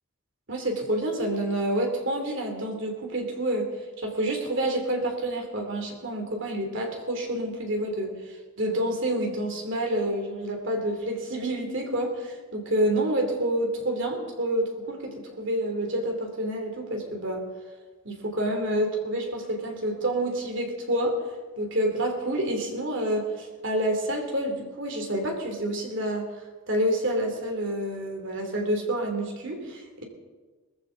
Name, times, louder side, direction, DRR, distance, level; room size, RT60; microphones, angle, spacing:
voice 1, 0.5-3.7 4.0-17.5 18.0-21.2 21.6-26.3 26.7-30.0, right 1 dB, 60° right, 3 dB, 3.0 m, -28 dB
20.5 x 14.5 x 3.9 m, 1.3 s
head